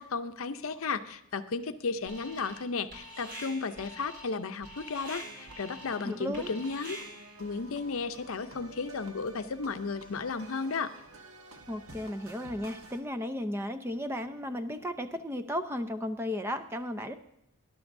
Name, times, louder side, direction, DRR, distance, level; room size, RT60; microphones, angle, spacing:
voice 1, 0.0-7.0 7.4-10.9, left 4 dB, 70° left, 9 dB, 0.7 m, -34 dB
Alarm, 2.1-2.7 2.9-7.4, equal, 50° right, 4.4 m, -45 dB
sound 1, 5.2-13.0, right 2 dB, 70° right, 1.4 m, -51 dB
voice 2, 6.0-6.5 11.7-17.1, left 1 dB, 10° right, 8 dB, 0.5 m, -34 dB
18.0 x 11.5 x 2.6 m, 0.84 s
head